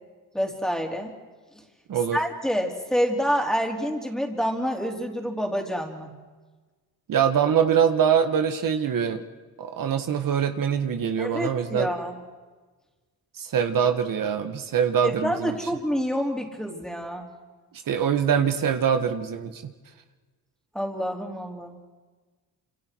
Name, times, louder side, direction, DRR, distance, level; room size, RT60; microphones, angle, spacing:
voice 1, 0.3-1.1 1.5-1.6 2.1-6.1 11.2-12.2 15.0-17.3 20.7-21.8, equal, ahead, 1 dB, 3.8 m, -27 dB
voice 2, 7.1-9.2 9.6-11.9 13.4-15.5 17.9-19.7, right 8 dB, 65° right, 7 dB, 1.7 m, -23 dB
29.5 x 28.0 x 4.7 m, 1.3 s
cardioid pair, 130°, 36 cm